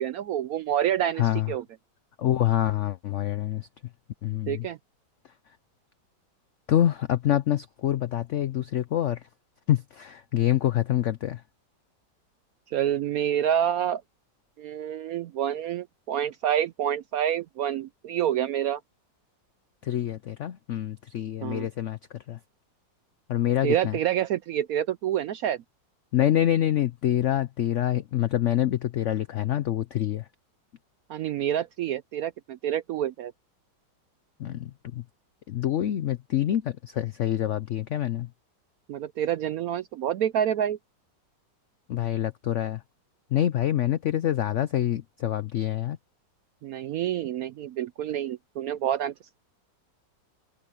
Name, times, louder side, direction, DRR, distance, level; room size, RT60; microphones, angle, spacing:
voice 1, 0.0-1.6 4.5-4.8 12.7-14.0 14.6-18.8 21.4-21.7 23.6-25.6 31.1-33.3 38.9-40.8 46.6-49.4, right 10 dB, 75° right, 0.8 m, -28 dB
voice 2, 1.2-1.5 2.2-3.7 4.2-4.7 6.7-9.2 9.7-11.4 19.8-22.0 22.3-22.4 23.3-24.0 26.1-30.2 34.4-35.0 35.5-38.3 41.9-42.8 43.3-46.0, left 12 dB, 75° left, 0.6 m, -26 dB
open air
omnidirectional pair, 2.0 m